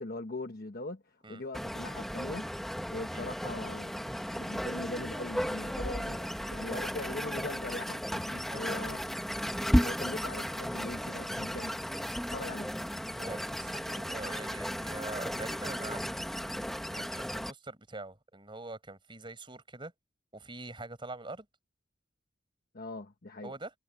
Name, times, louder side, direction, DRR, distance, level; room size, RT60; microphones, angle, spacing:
voice 1, 0.0-2.5 2.9-9.0 9.8-11.9 12.3-12.7 22.7-23.5, left 2 dB, 50° left, 1.1 m, -41 dB
sound 1, 1.5-17.5, equal, ahead, 1.6 m, -34 dB
voice 2, 8.1-8.6 13.1-16.3 16.9-19.9 20.3-21.5 23.4-23.7, right 2 dB, 25° right, 5.3 m, -44 dB
head